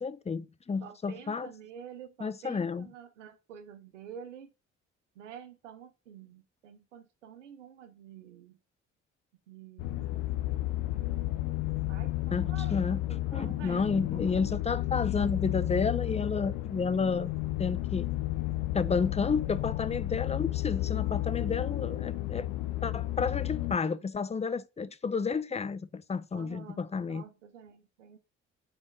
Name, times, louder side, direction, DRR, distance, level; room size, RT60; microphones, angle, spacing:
voice 1, 0.0-1.5 2.2-2.9 12.3-13.0 13.3-17.3 17.6-18.1 18.7-22.5 22.8-27.2, left 5 dB, 20° left, 0.6 m, -31 dB
voice 2, 0.8-4.5 5.2-8.6 9.5-10.2 11.9-14.0 14.3-14.5 26.3-28.2, right 8 dB, 90° right, 0.8 m, -49 dB
sound 1, 9.8-23.8, left 16 dB, 75° left, 0.7 m, -32 dB
5.3 x 4.3 x 6.0 m
hypercardioid pair, 50°, 36 cm